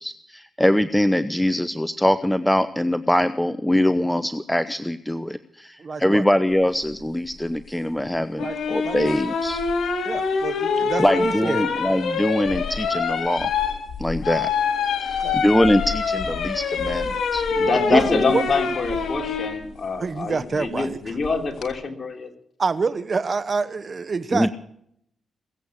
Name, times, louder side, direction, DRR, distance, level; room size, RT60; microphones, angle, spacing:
voice 1, 0.0-9.6 11.0-13.5 14.0-14.5 15.0-17.4 17.9-18.2 24.3-24.5, left 1 dB, 5° left, 13 dB, 0.7 m, -22 dB
voice 2, 5.8-6.2 8.4-8.6 8.8-9.2 10.0-11.6 15.2-15.4 17.9-18.0 18.3-18.4 20.0-21.0 22.6-24.5, right 4 dB, 45° right, 13 dB, 1.1 m, -27 dB
sound 1, 8.4-19.6 21.2-21.7, left 5 dB, 75° left, 3.0 m, -25 dB
voice 3, 17.5-22.3, left 4 dB, 45° left, 3 dB, 3.3 m, -25 dB
21.0 x 8.2 x 8.2 m, 0.70 s
supercardioid pair, 50°, 0 cm